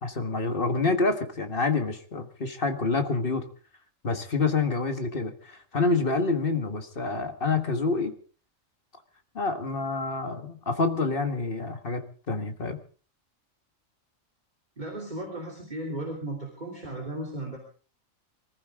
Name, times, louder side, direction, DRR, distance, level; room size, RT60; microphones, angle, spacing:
voice 1, 0.0-3.4 4.0-8.1 9.4-12.8, left 3 dB, 45° left, 7 dB, 1.8 m, -27 dB
voice 2, 14.8-17.6, right 1 dB, 35° right, -1 dB, 3.4 m, -35 dB
25.0 x 14.5 x 3.7 m, 0.41 s
omnidirectional pair, 1.4 m